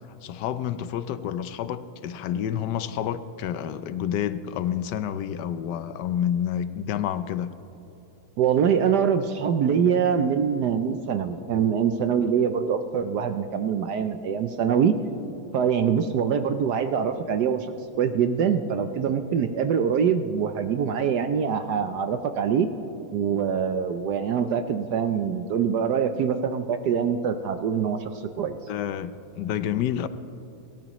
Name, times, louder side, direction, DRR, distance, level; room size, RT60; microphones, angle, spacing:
voice 1, 0.2-7.5 28.7-30.1, left 10 dB, 75° left, 12 dB, 1.0 m, -29 dB
voice 2, 8.4-14.9 15.5-22.7 23.1-28.6, right 7 dB, 70° right, 8 dB, 1.0 m, -24 dB
29.0 x 13.5 x 3.0 m, 2.9 s
omnidirectional pair, 2.4 m